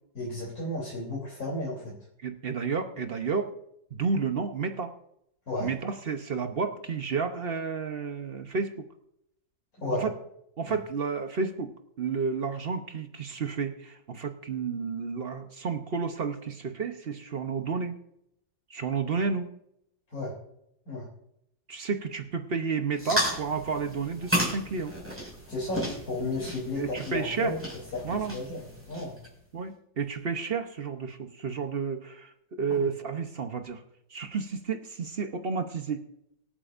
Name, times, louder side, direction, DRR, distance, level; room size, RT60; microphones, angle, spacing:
voice 1, 0.2-2.0 5.5-5.7 9.8-10.1 10.7-10.8 20.1-20.3 20.9-21.1 25.5-27.6 27.9-28.6 28.9-29.1, left 2 dB, 50° left, -5 dB, 3.7 m, -33 dB
voice 2, 2.2-3.5 3.9-4.9 5.6-8.9 9.9-10.2 10.6-18.0 18.7-19.5 21.7-24.9 26.8-27.5 28.0-28.4 29.5-33.8 34.1-36.0, right 5 dB, 50° right, 7 dB, 0.7 m, -31 dB
sound 1, 23.0-29.3, equal, 5° right, 5.4 m, -34 dB
25.0 x 8.7 x 2.5 m, 0.76 s
omnidirectional pair, 2.0 m